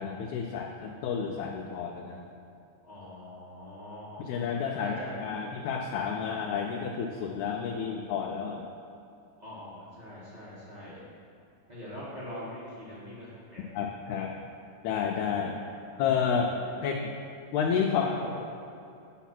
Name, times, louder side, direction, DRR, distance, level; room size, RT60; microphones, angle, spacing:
voice 1, 0.0-2.2 4.3-8.7 13.7-14.3 14.8-15.6 16.0-16.5 16.8-17.1 17.5-18.1, left 7 dB, 80° left, 0 dB, 1.9 m, -30 dB
voice 2, 2.8-5.6 9.4-11.0 11.7-13.7 15.5-16.8 18.0-18.3, equal, 30° right, -9 dB, 0.8 m, -43 dB
8.3 x 3.9 x 5.9 m, 2.7 s
omnidirectional pair, 3.4 m